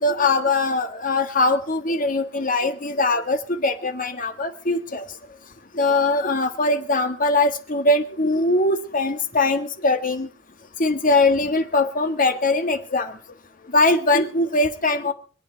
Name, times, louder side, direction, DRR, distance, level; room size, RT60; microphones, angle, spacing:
voice 1, 0.0-5.0 5.7-10.3 10.8-13.1 13.7-15.1, left 2 dB, 45° left, 7 dB, 1.6 m, -21 dB
25.0 x 8.8 x 4.5 m, 0.40 s
head